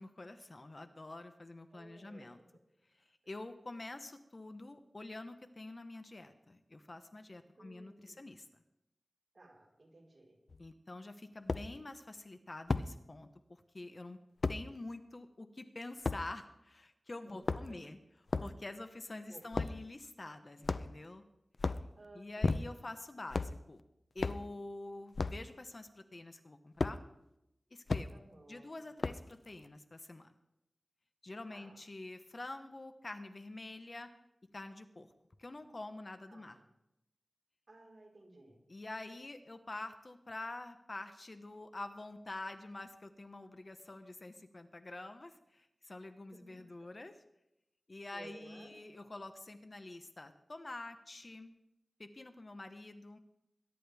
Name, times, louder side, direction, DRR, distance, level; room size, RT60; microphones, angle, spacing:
voice 1, 0.0-2.4 3.0-8.6 10.6-14.2 14.5-18.0 18.4-21.2 21.7-21.8 22.1-23.8 24.1-27.0 27.7-28.2 28.5-30.3 31.2-34.1 34.5-35.1 35.4-36.6 38.7-47.2 47.9-51.5 52.0-53.2, left 2 dB, 45° left, 8 dB, 1.0 m, -47 dB
voice 2, 1.7-2.3 7.6-8.3 9.3-10.4 17.1-17.9 19.3-19.7 22.0-22.8 28.1-28.7 31.5-31.8 36.3-36.6 37.7-38.6 46.3-46.9 48.1-48.8, right 2 dB, 50° right, -2 dB, 4.4 m, -57 dB
sound 1, 10.5-10.6 11.5-11.7 12.7-12.9 14.4-14.6 16.0-16.2 17.3-17.8 18.3-18.5 19.5-19.8 20.6-21.1 21.5-21.9 22.4-22.9 23.3-23.6 24.2-24.4 25.1-25.4 26.8-27.0 27.9-28.1 29.0-29.3, left 3 dB, 65° left, 0.5 m, -33 dB
22.0 x 11.0 x 3.5 m, 0.85 s
wide cardioid pair, 90°, 0 cm